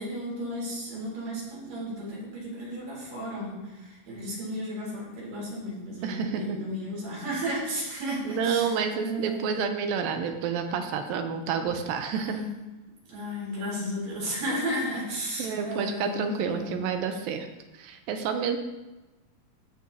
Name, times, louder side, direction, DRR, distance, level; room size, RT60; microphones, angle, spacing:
voice 1, 0.0-9.6 12.1-12.5 13.1-16.9, equal, 65° right, -6 dB, 5.0 m, -34 dB
voice 2, 6.0-6.6 8.3-12.4 15.4-17.5 17.7-18.6, right 6 dB, 80° right, 6 dB, 2.4 m, -29 dB
15.0 x 6.5 x 2.8 m, 1.1 s
omnidirectional pair, 4.1 m